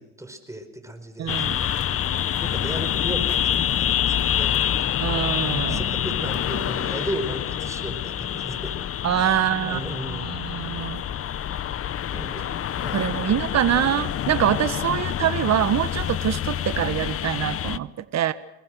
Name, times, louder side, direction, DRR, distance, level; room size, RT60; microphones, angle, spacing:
voice 1, 0.0-1.7 2.4-4.5 5.5-8.7 9.1-10.3 12.1-13.1, right 1 dB, 10° right, 8 dB, 5.0 m, -35 dB
voice 2, 1.2-1.6 5.0-5.8 9.0-9.8 10.1-11.0 12.9-18.3, right 10 dB, 45° right, 12 dB, 1.5 m, -24 dB
sound 1, 1.3-17.8, left 10 dB, 35° left, 0.9 m, -27 dB
28.0 x 21.0 x 6.5 m, 0.87 s
supercardioid pair, 90°, 37 cm